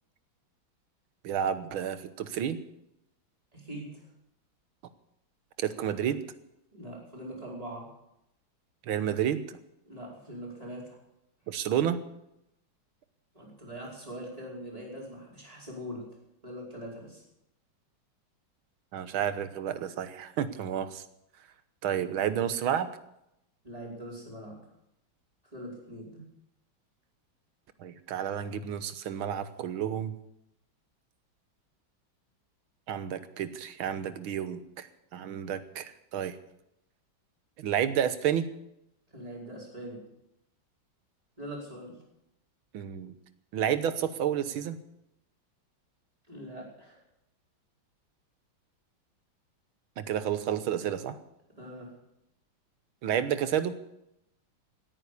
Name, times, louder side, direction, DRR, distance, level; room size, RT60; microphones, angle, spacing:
voice 1, 1.2-2.6 5.6-6.2 8.9-9.4 11.5-12.0 18.9-21.0 21.8-22.9 27.8-30.1 32.9-36.4 37.6-38.5 42.7-43.1 43.5-44.8 50.0-51.2 53.0-53.8, right 9 dB, 85° right, 12 dB, 1.8 m, -30 dB
voice 2, 3.5-4.1 6.7-7.9 9.9-11.0 13.3-16.0 16.4-17.2 23.6-24.6 25.4-26.2 39.1-40.0 41.4-42.0 46.3-47.0 51.6-51.9, equal, 15° right, -3 dB, 5.2 m, -42 dB
17.0 x 9.3 x 8.4 m, 0.83 s
omnidirectional pair, 2.2 m